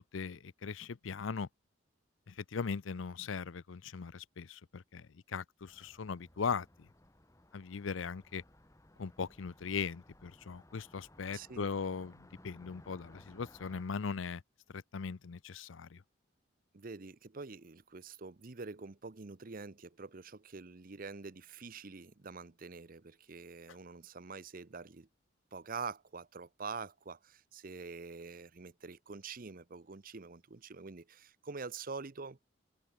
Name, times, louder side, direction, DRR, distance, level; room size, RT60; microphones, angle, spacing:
voice 1, 0.0-1.5 2.3-6.9 7.5-8.4 9.0-14.4 14.7-16.0, left 5 dB, 90° left, 0.6 m, -39 dB
Car passing by, 5.7-13.8, left 1 dB, 15° left, 3.1 m, -60 dB
voice 2, 11.3-11.7 16.7-25.1 25.5-32.4, right 4 dB, 45° right, 0.8 m, -46 dB
head